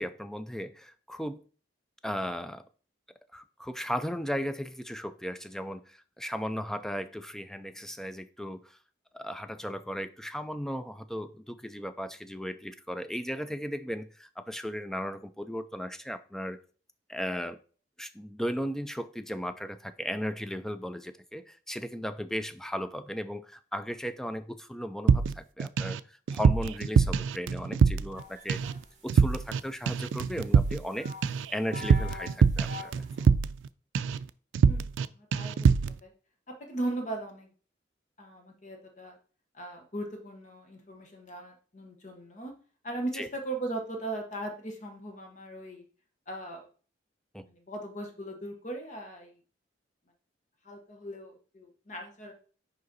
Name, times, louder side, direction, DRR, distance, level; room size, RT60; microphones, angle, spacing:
voice 1, 0.0-1.4 2.0-2.7 3.3-8.8 9.1-16.6 17.1-17.6 18.0-28.6 29.0-31.1 31.5-33.0 43.1-43.3 47.3-47.4, equal, 5° left, 0.3 m, -36 dB
sound 1, 25.1-26.0 26.3-28.2 28.5-28.8 29.1-29.6 29.9-33.7 33.9-34.2 34.5-35.1 35.3-35.9, right 6 dB, 90° right, 0.3 m, -24 dB
sound 2, 28.2-33.2, left 3 dB, 40° right, 1.5 m, -47 dB
voice 2, 34.6-36.1 36.5-37.5 38.2-39.2 39.5-42.5 42.8-45.8 46.3-46.7 47.4-49.4 50.6-52.3, right 2 dB, 40° left, 1.0 m, -38 dB
5.2 x 5.0 x 4.0 m
head